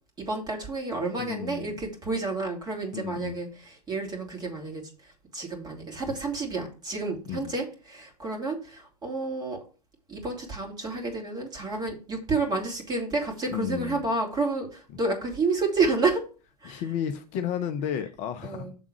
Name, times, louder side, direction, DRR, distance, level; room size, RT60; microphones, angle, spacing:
voice 1, 0.2-9.6 10.1-16.2 16.6-16.8 18.4-18.7, right 3 dB, 20° right, 1 dB, 2.6 m, -30 dB
voice 2, 1.2-1.8 2.9-3.4 7.3-7.5 13.5-14.0 16.6-18.8, left 9 dB, 35° left, 9 dB, 0.6 m, -33 dB
7.2 x 3.6 x 5.9 m, 0.36 s
figure-of-eight pair, 95°, 20 cm